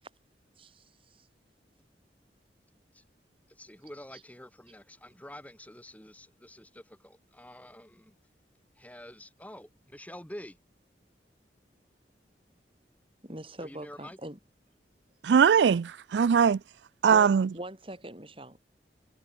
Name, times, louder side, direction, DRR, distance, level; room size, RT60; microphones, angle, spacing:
voice 1, 0.6-1.3 13.2-14.4 17.1-18.6, right 1 dB, 30° right, 6.2 m, -42 dB
voice 2, 3.5-8.2 8.8-10.6 13.6-14.2, left 1 dB, 10° left, 3.6 m, -47 dB
voice 3, 15.2-16.6 17.0-17.5, right 6 dB, 75° right, 0.4 m, -21 dB
head